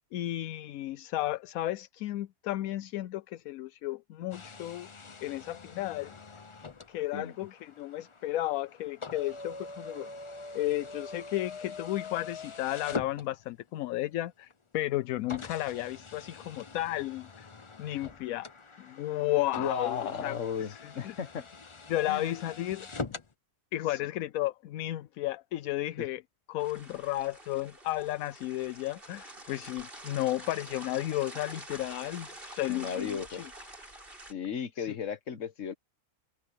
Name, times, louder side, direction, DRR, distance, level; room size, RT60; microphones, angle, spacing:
voice 1, 0.0-4.9 5.2-6.1 6.9-10.1 10.5-17.5 17.8-18.5 18.8-20.4 20.7-20.8 21.0-21.2 21.9-22.9 23.7-26.2 26.5-33.5 34.8-35.0, left 15 dB, 75° left, 1.0 m, -33 dB
sound 1, 4.3-13.8 14.5-14.6 15.3-23.3, left 4 dB, 30° left, 0.6 m, -44 dB
voice 2, 19.6-21.4 22.1-22.3 23.9-24.0 26.0-26.1 32.7-33.4 34.3-35.7, left 7 dB, 60° left, 1.5 m, -35 dB
sound 2, 26.6-34.3, right 1 dB, 35° right, 6.9 m, -47 dB
omnidirectional pair, 1.6 m